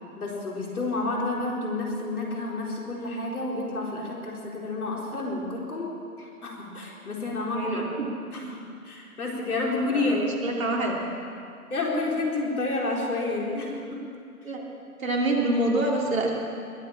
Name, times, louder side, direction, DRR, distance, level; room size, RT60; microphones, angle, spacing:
voice 1, 0.2-5.9 6.2-7.8 8.3-8.4 8.8-10.2 11.7-14.0, left 2 dB, 70° left, -2 dB, 4.3 m, -29 dB
voice 2, 7.5-8.1 9.9-11.0 14.4-14.7 15.0-16.3, right 2 dB, 60° right, -1 dB, 3.0 m, -26 dB
21.0 x 8.2 x 7.3 m, 2.4 s
figure-of-eight pair, 140°, 45 cm